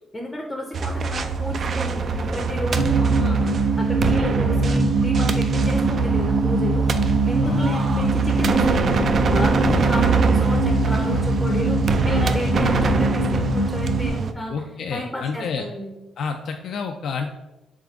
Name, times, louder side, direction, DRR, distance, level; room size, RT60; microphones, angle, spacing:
voice 1, 0.1-6.9 7.2-9.0 9.3-14.5 14.9-15.9, equal, 10° left, 2 dB, 0.6 m, -32 dB
sound 1, 0.7-14.3, right 4 dB, 50° right, 0.3 m, -25 dB
sound 2, 2.7-14.1, right 2 dB, 80° right, 1.2 m, -21 dB
voice 2, 7.4-7.7 14.5-15.7 16.2-17.3, left 5 dB, 65° left, 4 dB, 0.3 m, -29 dB
3.6 x 3.6 x 3.5 m, 1.0 s
cardioid pair, 90°, 0 cm